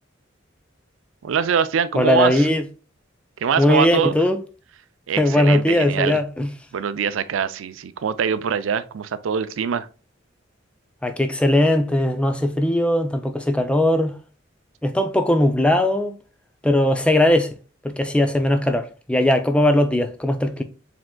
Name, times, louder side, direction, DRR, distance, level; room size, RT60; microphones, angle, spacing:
voice 1, 1.2-2.5 3.4-4.1 5.1-6.2 6.7-9.9, right 7 dB, 85° right, 0.4 m, -23 dB
voice 2, 2.0-2.7 3.6-4.4 5.2-6.5 11.0-14.1 14.8-16.2 16.6-17.6 17.8-20.6, left 1 dB, 5° left, 0.3 m, -19 dB
4.9 x 3.5 x 2.2 m
head